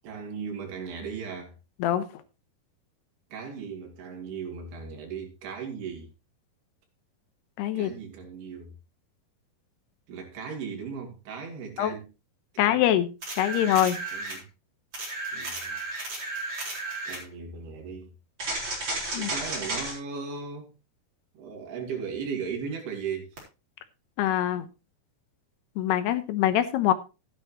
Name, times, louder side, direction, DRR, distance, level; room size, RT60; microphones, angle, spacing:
voice 1, 0.0-1.5 3.3-6.1 7.7-8.7 10.1-12.1 12.5-12.8 14.1-14.4 15.3-15.8 17.1-18.1 19.2-20.7 21.3-23.3, right 6 dB, 75° right, 4.6 m, -37 dB
voice 2, 7.6-7.9 11.8-11.9 12.6-13.1 13.4-14.0 19.1-19.3 24.2-24.7 25.8-26.9, left 12 dB, 85° left, 3.1 m, -24 dB
sound 1, 13.2-14.4 14.9-17.2 18.4-19.9 23.4-23.5, right 2 dB, 30° right, 4.7 m, -33 dB
14.0 x 10.0 x 3.0 m
omnidirectional pair, 4.7 m